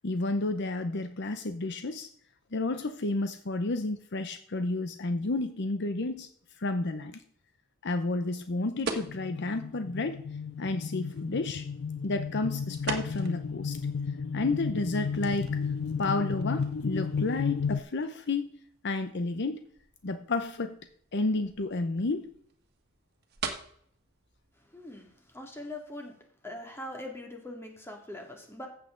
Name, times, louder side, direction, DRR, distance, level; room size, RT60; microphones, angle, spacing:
voice 1, 0.0-2.1 2.5-6.3 6.6-7.2 7.8-10.2 10.6-11.7 12.0-13.8 14.3-15.5 16.0-18.5 18.8-19.6 20.0-20.8 21.1-22.3, left 2 dB, 60° left, 9 dB, 0.8 m, -31 dB
sound 1, 8.8-25.7, right 4 dB, 55° right, 1.6 m, -45 dB
sound 2, 9.0-17.8, left 5 dB, 80° left, 0.4 m, -33 dB
voice 2, 24.7-26.2 26.4-28.7, left 1 dB, 10° left, 2 dB, 2.3 m, -42 dB
14.5 x 8.2 x 3.8 m, 0.64 s
head